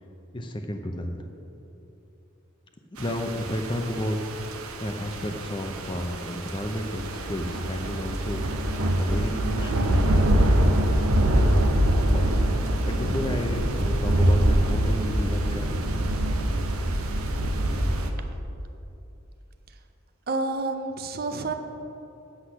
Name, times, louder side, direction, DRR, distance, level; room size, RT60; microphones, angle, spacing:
voice 1, 0.3-1.2 2.9-4.5 4.8-11.0 11.5-15.8, equal, 25° left, 4 dB, 0.7 m, -32 dB
sound 1, 3.0-18.1, right 1 dB, 90° right, 0.9 m, -24 dB
voice 2, 20.3-21.5, right 3 dB, 45° right, 7 dB, 0.6 m, -29 dB
8.1 x 8.0 x 5.9 m, 2.9 s
head